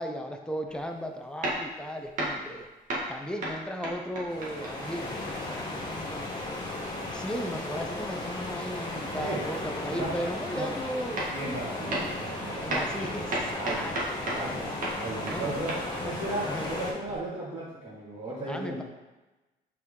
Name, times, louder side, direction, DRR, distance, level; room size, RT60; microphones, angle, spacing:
voice 1, 0.0-2.7 3.1-6.3 7.1-11.3 11.8-12.1 12.6-14.9 15.3-15.5 16.0-16.1 16.4-16.7 18.5-18.8, equal, 5° left, 4 dB, 0.7 m, -36 dB
sound 1, 0.7-0.9 1.4-2.6 2.9-5.2 10.7-10.8 11.2-11.6 11.9-12.3 12.7-14.5 14.8-17.2, right 1 dB, 50° right, 1.8 m, -34 dB
sound 2, 4.3-16.9, left 2 dB, 25° left, 1.4 m, -36 dB
voice 2, 9.1-9.5 9.9-10.2 10.5-10.7 11.3-13.2 13.5-14.0 14.2-15.7 16.0-18.8, right 1 dB, 30° right, -10 dB, 2.2 m, -36 dB
6.1 x 4.6 x 3.7 m, 1.1 s
cardioid pair, 110°, 17 cm